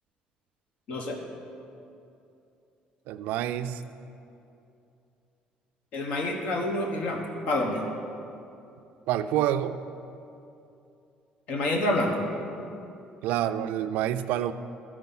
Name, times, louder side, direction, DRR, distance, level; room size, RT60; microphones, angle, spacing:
voice 1, 3.1-3.8 9.1-9.8 13.2-14.5, right 11 dB, 80° right, 11 dB, 0.3 m, -27 dB
voice 2, 5.9-7.8 11.5-12.2 12.6-12.7, left 1 dB, 55° left, 1 dB, 1.1 m, -28 dB
14.0 x 4.8 x 5.5 m, 2.7 s
cardioid pair, 170°, 3 cm